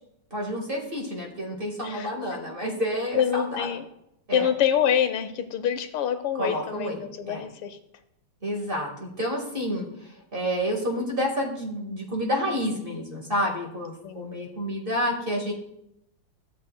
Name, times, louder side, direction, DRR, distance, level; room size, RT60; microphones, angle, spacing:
voice 1, 0.3-3.7 4.3-4.5 6.4-7.5 8.4-15.5, equal, 25° right, -1 dB, 1.7 m, -29 dB
voice 2, 3.1-3.8 4.3-7.8 14.0-14.3, left 9 dB, 85° left, 8 dB, 1.7 m, -26 dB
15.5 x 7.4 x 2.2 m, 0.79 s
omnidirectional pair, 2.4 m